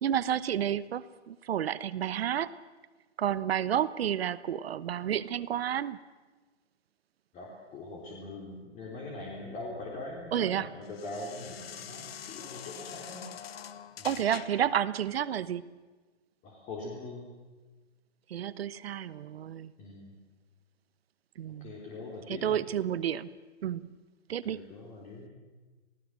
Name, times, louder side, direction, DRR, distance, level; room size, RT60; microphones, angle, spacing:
voice 1, 0.0-2.5 3.2-6.0 10.3-10.7 14.0-15.6 18.3-19.7 21.4-21.7 22.3-23.3 23.6-24.0 24.3-24.6, right 10 dB, 60° right, 17 dB, 1.2 m, -30 dB
voice 2, 7.3-13.3 14.0-14.2 16.4-17.3 19.8-20.2 21.6-22.6 24.4-25.3, left 2 dB, 20° left, -2 dB, 3.6 m, -42 dB
sound 1, 8.9-14.8, left 9 dB, 55° left, 1.6 m, -46 dB
28.0 x 18.5 x 7.6 m, 1.3 s
hypercardioid pair, 150°, 35 cm